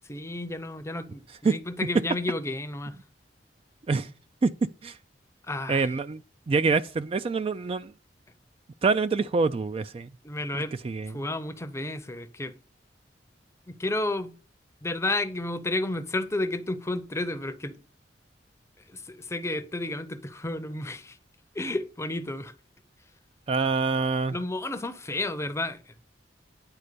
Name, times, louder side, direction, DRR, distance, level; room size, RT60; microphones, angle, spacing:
voice 1, 0.1-3.0 5.5-5.9 10.2-10.7 11.1-12.5 13.7-14.3 14.8-17.7 18.9-21.2 21.5-22.5 24.3-25.8, left 2 dB, 15° left, 0.6 m, -31 dB
voice 2, 5.7-6.2 6.5-7.9 8.8-10.1 10.5-11.3 23.5-24.4, right 4 dB, 30° right, 0.3 m, -26 dB
9.8 x 4.3 x 6.6 m
head